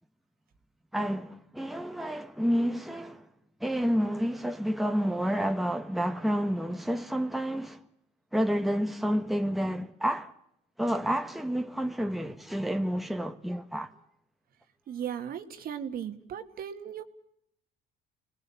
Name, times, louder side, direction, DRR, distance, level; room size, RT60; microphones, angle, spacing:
voice 1, 0.9-3.3 3.6-7.8 8.3-10.3 10.8-13.9, equal, ahead, 1.3 m, -29 dB
voice 2, 14.9-17.0, right 9 dB, 60° right, 2.1 m, -37 dB
29.0 x 20.0 x 7.2 m
cardioid pair, 110°, 17 cm